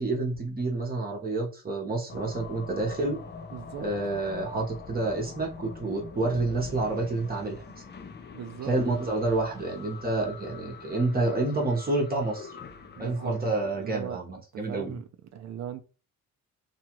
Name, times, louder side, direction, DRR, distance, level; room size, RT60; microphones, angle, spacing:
voice 1, 0.0-3.2 3.8-7.6 8.7-12.5 13.0-15.0, right 2 dB, 25° right, 0.9 m, -29 dB
sound 1, 2.1-14.1, left 5 dB, 30° left, 0.5 m, -44 dB
voice 2, 3.5-3.8 8.3-8.7 9.0-9.1 13.0-13.4 13.6-15.8, right 9 dB, 50° right, 0.5 m, -39 dB
2.8 x 2.4 x 2.9 m
cardioid pair, 95°, 34 cm